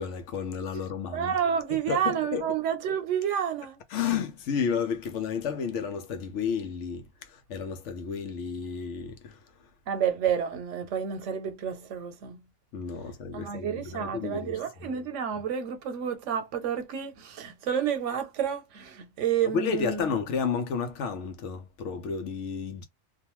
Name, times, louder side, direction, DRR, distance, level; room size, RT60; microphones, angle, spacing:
voice 1, 0.0-1.3 1.9-2.5 3.9-9.4 12.7-14.6 19.5-22.8, left 6 dB, 80° left, 0.9 m, -32 dB
voice 2, 1.1-3.8 9.9-12.4 13.3-20.1, right 8 dB, 85° right, 1.0 m, -30 dB
2.5 x 2.3 x 2.9 m
omnidirectional pair, 1.2 m